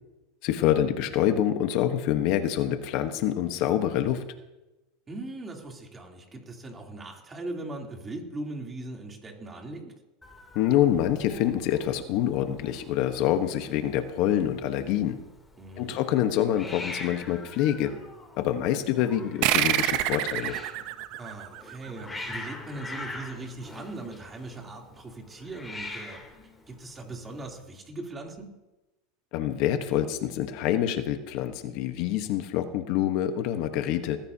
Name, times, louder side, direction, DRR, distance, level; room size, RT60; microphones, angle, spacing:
voice 1, 0.4-4.2 10.5-15.2 15.8-17.9 18.4-20.5 29.3-34.2, left 11 dB, 55° left, 8 dB, 1.2 m, -26 dB
voice 2, 5.1-9.9 15.6-16.0 21.2-26.2 26.7-28.5, right 2 dB, 20° right, 0 dB, 3.3 m, -39 dB
Hiss, 10.2-27.5, left 2 dB, 10° left, 3.0 m, -44 dB
sound 1, 19.4-22.5, right 13 dB, 60° right, 0.9 m, -27 dB
20.0 x 14.5 x 2.9 m, 1.0 s
supercardioid pair, 115°, 0 cm